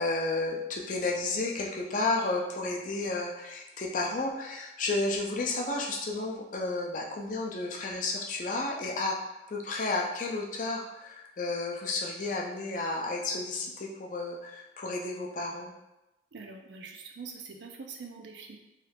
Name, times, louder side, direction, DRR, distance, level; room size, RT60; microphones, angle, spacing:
voice 1, 0.0-9.2 9.5-15.7, left 2 dB, 45° left, 0 dB, 0.4 m, -32 dB
voice 2, 16.3-18.6, right 5 dB, 70° right, 3 dB, 0.4 m, -44 dB
3.1 x 2.3 x 3.3 m, 0.98 s
head